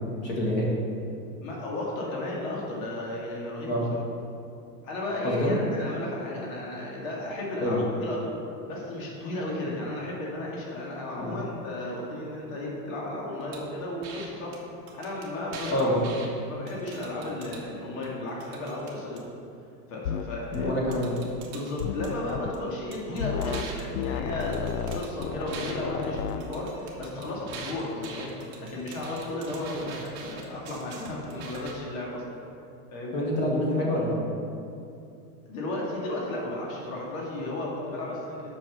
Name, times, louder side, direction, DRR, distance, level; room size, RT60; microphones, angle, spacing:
voice 1, 0.2-0.7 3.7-3.8 5.2-5.6 7.6-7.8 11.2-11.3 15.7-16.1 20.5-21.1 29.8-29.9 33.1-34.2, left 1 dB, 20° left, -3 dB, 1.5 m, -26 dB
voice 2, 1.4-4.0 4.8-8.3 8.7-14.6 14.9-16.0 16.5-19.2 19.9-20.7 21.5-28.3 28.6-32.2 32.9-33.2 35.5-38.5, left 1 dB, 60° left, -4 dB, 2.3 m, -34 dB
sound 1, 13.5-13.6 14.0-14.3 14.5-14.6 14.9-16.3 16.7-17.6 18.0-19.2 20.5-20.6 20.9-22.6 22.9-25.7 26.0-31.7, right 5 dB, 25° right, 1.0 m, -43 dB
sound 2, 20.0-20.3 20.5-20.8 21.8-22.5 23.2-23.7 23.9-26.4, left 8 dB, 80° left, 0.6 m, -32 dB
8.4 x 6.1 x 5.5 m, 2.6 s
supercardioid pair, 175°, 47 cm